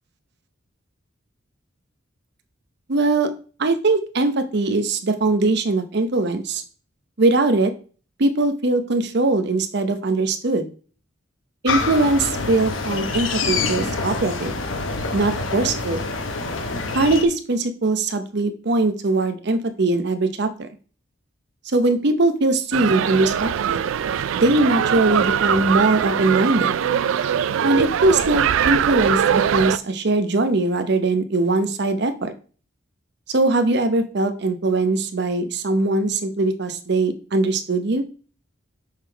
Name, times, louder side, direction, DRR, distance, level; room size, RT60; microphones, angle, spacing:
voice 1, 2.9-3.3 3.6-6.6 7.2-7.7 8.2-10.7 11.6-14.5 15.1-16.0 16.9-20.7 21.7-23.8 24.3-26.7 27.6-32.3 33.3-38.0, right 2 dB, 55° right, 9 dB, 0.7 m, -21 dB
sound 1, 11.7-17.2, left 3 dB, 75° left, 1.0 m, -26 dB
sound 2, 22.7-29.8, right 8 dB, 80° right, 0.3 m, -22 dB
6.5 x 3.6 x 4.5 m, 0.39 s
head